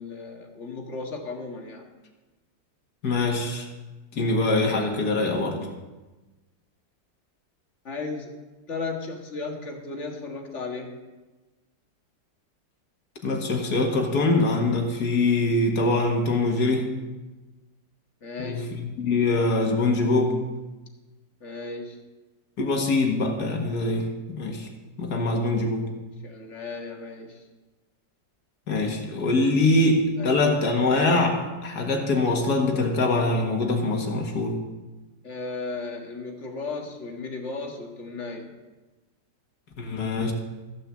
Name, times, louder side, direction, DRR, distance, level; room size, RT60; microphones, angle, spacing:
voice 1, 0.0-1.9 7.8-8.3 8.7-10.9 18.2-18.7 21.4-22.0 26.2-27.4 30.2-30.4 35.2-38.5, left 3 dB, 40° left, 2 dB, 1.9 m, -35 dB
voice 2, 3.0-3.7 4.1-5.7 13.2-16.9 18.4-20.4 22.6-24.7 25.0-25.9 28.7-34.6 39.8-40.3, left 2 dB, 60° left, 2 dB, 2.1 m, -23 dB
14.5 x 6.7 x 7.4 m, 1.2 s
omnidirectional pair, 2.0 m